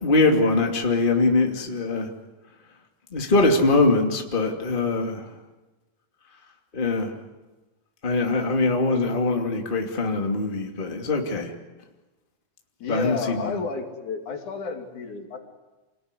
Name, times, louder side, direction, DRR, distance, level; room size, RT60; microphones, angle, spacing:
voice 1, 0.0-2.1 3.1-5.2 6.7-7.1 8.0-11.5 12.9-13.6, left 3 dB, 15° left, 2 dB, 2.4 m, -22 dB
voice 2, 12.8-15.4, left 4 dB, 70° left, 3 dB, 4.1 m, -31 dB
28.0 x 20.0 x 9.9 m, 1.1 s
omnidirectional pair, 3.6 m